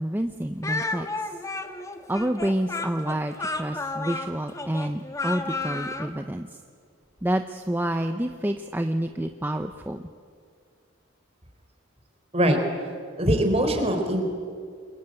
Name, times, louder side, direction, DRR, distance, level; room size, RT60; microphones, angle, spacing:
voice 1, 0.0-1.3 2.1-6.6 7.2-10.0, right 1 dB, 10° right, 6 dB, 0.7 m, -28 dB
Speech, 0.6-6.1, left 3 dB, 15° left, 1.4 m, -32 dB
voice 2, 13.2-14.3, right 1 dB, 30° right, 4 dB, 4.0 m, -22 dB
28.5 x 22.5 x 9.1 m, 2.2 s
head